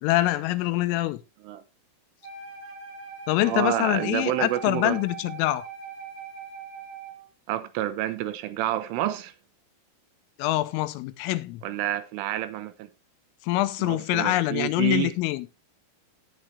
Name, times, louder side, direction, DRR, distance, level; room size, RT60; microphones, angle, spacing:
voice 1, 0.0-1.2 3.3-5.7 10.4-11.6 13.5-15.5, left 17 dB, 85° left, 3.3 m, -25 dB
Wind instrument woodwind instrument, 2.2-7.3, right 5 dB, 45° right, 4.9 m, -41 dB
voice 2, 3.4-5.0 7.5-9.3 11.6-12.9 13.8-15.1, right 13 dB, 80° right, 3.3 m, -29 dB
18.0 x 6.5 x 3.2 m
omnidirectional pair, 6.0 m